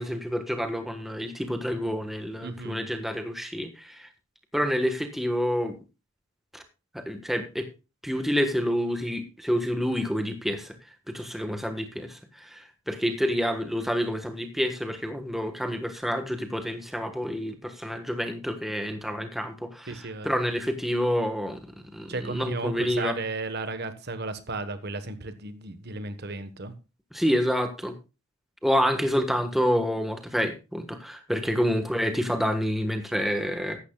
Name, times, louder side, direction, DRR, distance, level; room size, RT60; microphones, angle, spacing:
voice 1, 0.0-4.1 4.5-5.8 6.5-6.6 6.9-7.7 8.0-10.7 11.1-19.9 20.2-21.6 21.9-23.2 27.1-28.0 28.6-33.8, equal, ahead, 1.4 m, -28 dB
voice 2, 2.4-2.9 19.9-20.3 22.1-26.7 31.5-31.7, right 3 dB, 50° right, 1.3 m, -34 dB
15.5 x 12.0 x 2.3 m
head